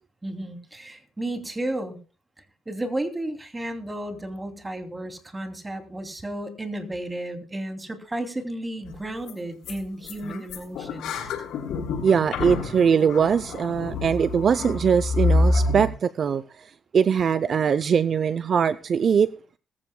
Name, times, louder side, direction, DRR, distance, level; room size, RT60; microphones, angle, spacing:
voice 1, 0.2-2.0 2.7-11.1, right 1 dB, 15° right, 2.7 m, -33 dB
sound 1, 8.9-9.0 9.2-9.3 9.6-9.8 10.0-15.9, left 2 dB, 80° left, 7.2 m, -27 dB
voice 2, 12.0-19.3, right 7 dB, 50° right, 0.5 m, -22 dB
21.0 x 15.0 x 2.2 m
cardioid pair, 90°, 0 cm